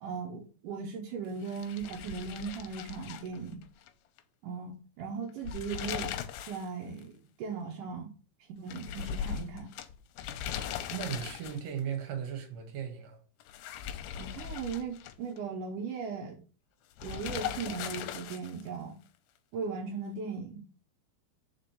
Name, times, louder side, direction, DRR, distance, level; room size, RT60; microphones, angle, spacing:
voice 1, 0.0-3.7 4.4-6.2 6.5-8.1 8.6-9.7 14.2-16.4 17.0-19.0 19.5-20.6, right 5 dB, 75° right, 1.9 m, -38 dB
sound 1, 1.4-3.9 4.2-4.3 5.3-6.7 7.0-7.1 8.7-11.8 13.4-15.4 17.0-18.7, left 9 dB, 80° left, 2.4 m, -39 dB
voice 2, 10.9-13.2, right 8 dB, 60° right, 2.0 m, -37 dB
5.2 x 5.0 x 5.8 m
omnidirectional pair, 4.9 m